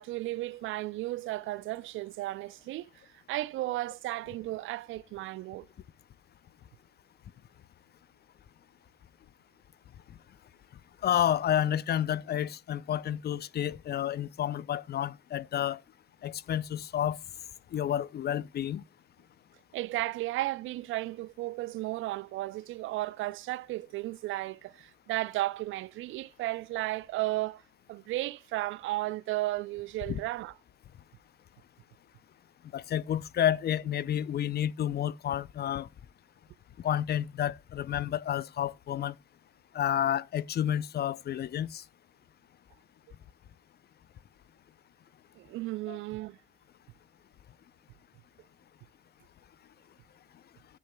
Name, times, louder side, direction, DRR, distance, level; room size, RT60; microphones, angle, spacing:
voice 1, 0.0-5.7 19.7-27.6 27.9-30.5 45.4-46.4, right 17 dB, 70° right, 0.4 m, -34 dB
voice 2, 11.0-15.8 16.2-17.2 17.7-18.8 30.1-30.2 32.7-35.9 36.8-39.1 39.7-41.8 45.9-46.0, left 10 dB, 50° left, 0.5 m, -30 dB
13.0 x 9.6 x 2.2 m
supercardioid pair, 55°, 21 cm